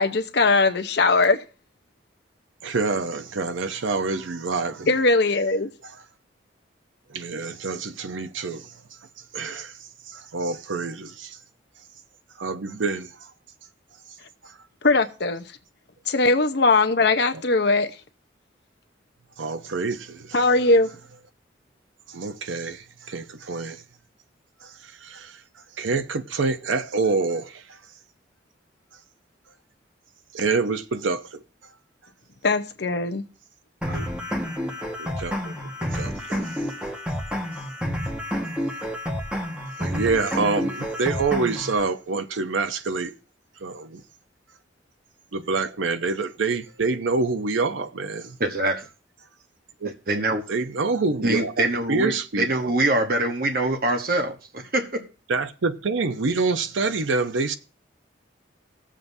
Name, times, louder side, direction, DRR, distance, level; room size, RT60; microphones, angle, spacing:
voice 1, 0.0-1.4 4.9-5.7 14.8-15.4 16.1-17.9 20.3-20.9 32.4-33.2, left 3 dB, 60° left, 0.8 m, -20 dB
voice 2, 2.6-4.9 5.8-5.9 7.1-8.7 9.3-11.4 12.4-13.3 14.4-14.5 17.3-17.4 19.4-20.4 22.1-23.8 24.6-25.4 25.8-27.8 30.3-31.4 33.9-34.0 35.0-36.6 39.8-43.1 43.6-44.0 45.3-48.4 49.8-50.2 50.5-52.7 55.3-57.6, right 3 dB, 90° right, 0.7 m, -27 dB
sound 1, 33.8-41.8, equal, 5° right, 1.4 m, -29 dB
voice 3, 48.4-48.9 50.1-50.4 51.2-55.0, right 2 dB, 50° right, 1.1 m, -24 dB
19.0 x 7.5 x 2.7 m
head